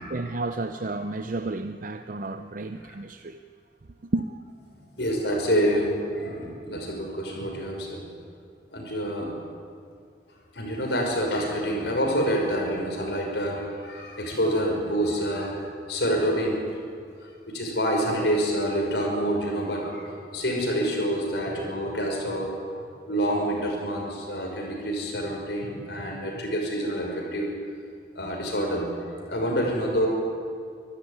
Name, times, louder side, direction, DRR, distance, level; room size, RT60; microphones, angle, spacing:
voice 1, 0.0-3.4 4.1-4.3, right 2 dB, 45° right, 8 dB, 0.6 m, -31 dB
voice 2, 5.0-8.0 8.7-9.3 10.5-15.6 15.9-16.6 17.2-22.5 23.1-27.5 28.2-30.1, equal, 65° left, 0 dB, 5.6 m, -27 dB
25.5 x 13.5 x 9.8 m, 2.2 s
head